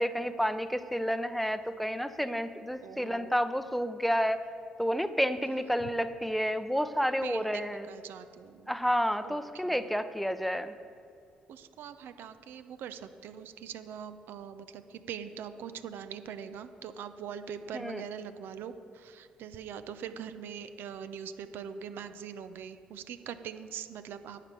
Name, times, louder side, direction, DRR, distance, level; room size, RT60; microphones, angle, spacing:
voice 1, 0.0-4.4 4.8-7.9 8.7-10.7 17.7-18.0, equal, ahead, 11 dB, 0.7 m, -30 dB
voice 2, 2.8-3.3 5.5-5.9 7.2-8.7 9.2-9.4 9.6-9.9 11.5-24.4, right 8 dB, 65° right, 11 dB, 0.6 m, -42 dB
11.5 x 8.6 x 4.8 m, 2.5 s
hypercardioid pair, 45°, 4 cm